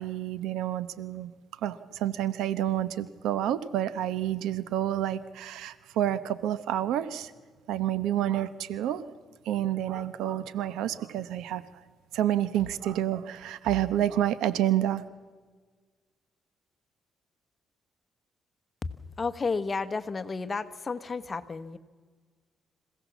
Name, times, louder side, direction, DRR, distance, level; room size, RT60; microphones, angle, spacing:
voice 1, 0.0-1.3 1.6-7.3 7.7-9.1 9.5-11.6 12.1-15.0, right 12 dB, 90° right, 14 dB, 0.9 m, -29 dB
voice 2, 19.2-21.8, left 4 dB, 30° left, 12 dB, 1.2 m, -32 dB
26.0 x 16.5 x 7.1 m, 1.5 s
cardioid pair, 90°, 0 cm